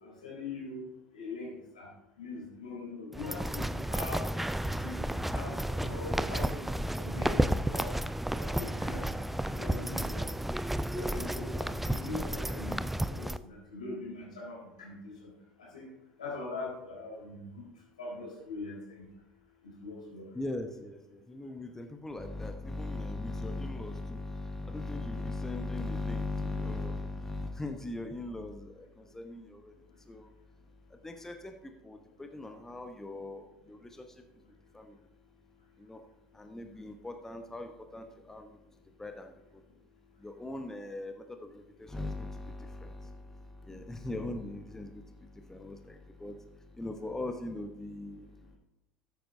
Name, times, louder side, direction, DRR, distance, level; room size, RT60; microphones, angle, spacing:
voice 1, 0.0-1.9 2.2-4.3 4.8-6.6 6.9-7.9 8.3-9.1 9.4-10.2 10.9-15.3 15.6-15.9 16.2-17.7 18.0-19.0 19.6-20.3, left 3 dB, 80° left, -4 dB, 4.1 m, -42 dB
sound 1, 3.1-13.4, right 1 dB, 5° right, 0.4 m, -32 dB
voice 2, 20.3-30.3 30.9-34.2 34.7-35.0 35.8-36.1 36.3-39.6 40.2-48.6, left 2 dB, 10° left, 5 dB, 0.9 m, -39 dB
13.5 x 9.2 x 2.7 m, 0.89 s
figure-of-eight pair, 65°, 4 cm